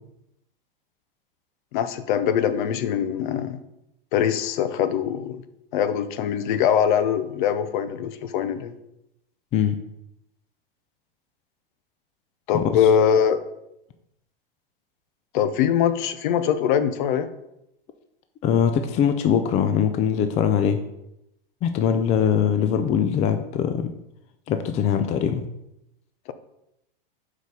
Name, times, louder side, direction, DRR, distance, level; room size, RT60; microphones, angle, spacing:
voice 1, 1.7-3.6 4.1-5.4 5.7-8.7 12.5-13.4 15.3-17.3, left 8 dB, 55° left, 12 dB, 0.8 m, -22 dB
voice 2, 18.4-20.8 21.6-23.9 24.5-25.4, left 8 dB, 25° left, 8 dB, 0.4 m, -22 dB
6.2 x 4.9 x 5.4 m, 0.84 s
hypercardioid pair, 135°, 29 cm